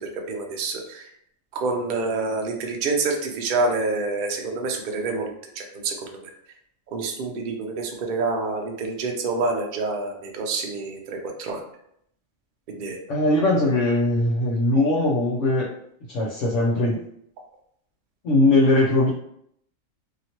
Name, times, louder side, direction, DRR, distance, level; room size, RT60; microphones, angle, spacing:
voice 1, 0.0-1.0 1.5-6.1 6.9-11.6 12.7-13.0, right 3 dB, 55° right, 2 dB, 0.5 m, -27 dB
voice 2, 13.1-15.7 16.1-17.0 18.2-19.1, left 2 dB, 70° left, -6 dB, 1.0 m, -20 dB
2.9 x 2.9 x 2.8 m, 0.72 s
omnidirectional pair, 1.4 m